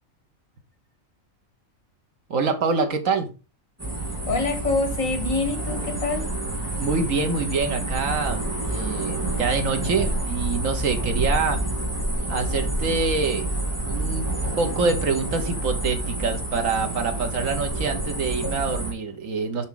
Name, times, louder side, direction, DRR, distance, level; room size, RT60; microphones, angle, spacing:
voice 1, 2.3-3.3 6.8-11.6 12.3-13.5 13.9-14.3 14.6-19.6, right 4 dB, 70° right, 1.6 m, -25 dB
sound 1, 3.8-18.9, right 2 dB, 10° right, 3.6 m, -28 dB
voice 2, 4.3-6.3, left 3 dB, 70° left, 2.2 m, -25 dB
7.2 x 5.5 x 3.9 m
omnidirectional pair, 1.4 m